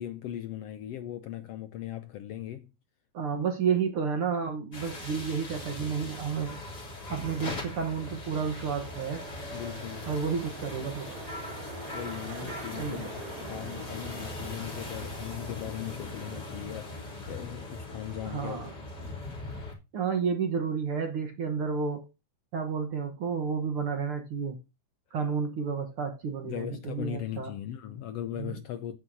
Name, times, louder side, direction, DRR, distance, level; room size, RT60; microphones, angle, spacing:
voice 1, 0.0-2.7 9.5-10.1 11.9-18.6 26.4-29.0, left 11 dB, 75° left, 1.5 m, -38 dB
voice 2, 3.1-6.6 7.1-9.2 10.1-11.1 12.8-13.1 18.3-18.7 19.9-22.1 22.5-24.6 25.1-27.5 28.4-28.6, right 6 dB, 55° right, 1.8 m, -31 dB
sound 1, 4.7-19.7, left 2 dB, 35° left, 3.7 m, -40 dB
sound 2, 8.0-16.9, right 7 dB, 70° right, 2.7 m, -47 dB
12.5 x 9.4 x 2.7 m
omnidirectional pair, 3.4 m